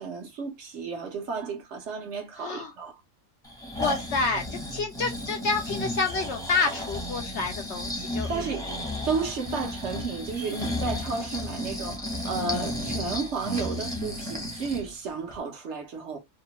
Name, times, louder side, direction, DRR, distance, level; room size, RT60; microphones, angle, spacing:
voice 1, 0.0-3.0 8.3-8.7 9.1-16.2, right 4 dB, 60° right, 1.0 m, -32 dB
voice 2, 2.4-2.7 3.8-8.3 9.5-9.6, left 4 dB, 65° left, 0.7 m, -28 dB
Breathing, 3.4-14.9 15.3-15.4, left 1 dB, 5° left, 0.7 m, -33 dB
2.9 x 2.3 x 2.8 m
omnidirectional pair, 1.5 m